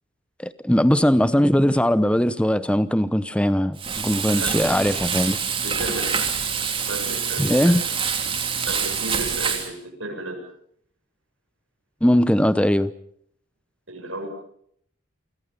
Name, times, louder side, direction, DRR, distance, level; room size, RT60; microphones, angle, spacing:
voice 1, 0.4-5.4 7.4-7.8 12.0-12.9, equal, 5° left, 0.9 m, -20 dB
Frying (food), 3.8-9.7, right 6 dB, 25° right, 3.1 m, -26 dB
voice 2, 5.6-6.2 6.9-7.7 8.6-9.7 10.0-10.4 13.9-14.3, right 2 dB, 75° right, 7.6 m, -33 dB
29.0 x 25.0 x 5.4 m
head